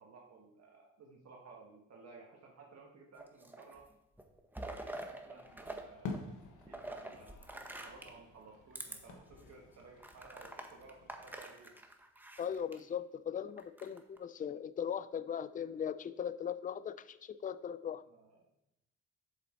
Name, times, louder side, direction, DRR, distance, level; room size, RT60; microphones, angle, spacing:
voice 1, 0.0-3.9 4.6-6.2 6.6-11.8 18.2-18.4, right 4 dB, 60° right, -1 dB, 1.5 m, -56 dB
sound 1, 3.2-3.8 4.2-5.8 6.1-8.2 8.7-9.0 9.4-9.5 10.0-12.8 13.6-14.2, right 1 dB, 5° right, 1.1 m, -46 dB
sound 2, 5.4-11.4, left 4 dB, 80° left, 1.3 m, -49 dB
voice 2, 12.4-18.0, left 8 dB, 30° left, 14 dB, 0.4 m, -39 dB
7.3 x 7.1 x 4.3 m, 0.87 s
cardioid pair, 90°, 30 cm